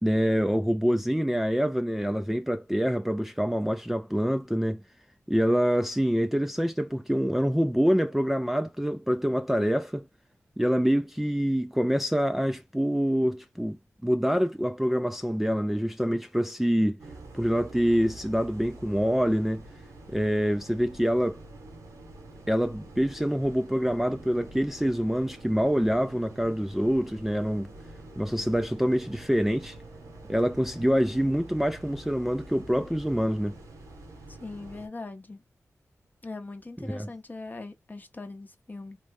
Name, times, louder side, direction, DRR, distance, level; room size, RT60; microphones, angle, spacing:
voice 1, 0.0-4.8 5.3-10.0 10.6-13.8 14.0-17.0 17.3-19.6 20.1-21.4 22.5-27.7 28.2-29.8 30.3-33.6 36.8-37.1, equal, 5° right, 0.3 m, -26 dB
sound 1, 17.0-34.9, right 2 dB, 90° right, 1.0 m, -46 dB
voice 2, 34.4-35.4 36.2-39.0, left 3 dB, 30° left, 0.7 m, -40 dB
3.1 x 2.0 x 3.4 m
cardioid pair, 50°, 5 cm